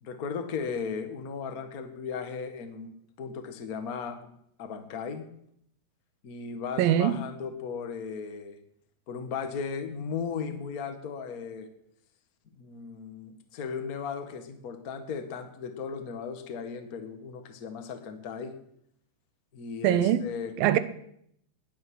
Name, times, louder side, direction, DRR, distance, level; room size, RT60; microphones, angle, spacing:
voice 1, 0.0-2.9 3.2-4.2 4.6-5.3 6.2-8.6 9.1-11.7 12.6-18.5 19.5-20.6, left 6 dB, 55° left, 1.0 m, -36 dB
voice 2, 6.8-7.2 19.8-20.2 20.6-20.8, right 11 dB, 90° right, 2.7 m, -22 dB
20.0 x 9.2 x 6.2 m
omnidirectional pair, 4.0 m